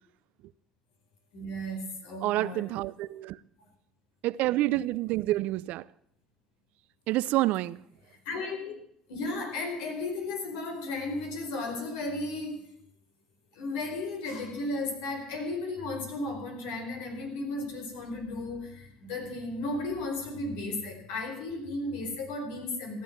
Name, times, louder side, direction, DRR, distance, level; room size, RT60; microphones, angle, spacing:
voice 1, 1.3-2.6 8.1-8.7 9.1-12.7 13.5-23.0, left 2 dB, 85° left, 4.5 m, -34 dB
voice 2, 2.2-3.4 4.2-5.8 7.1-7.8, right 16 dB, 75° right, 0.6 m, -28 dB
15.5 x 11.0 x 7.3 m
supercardioid pair, 85°, 3 cm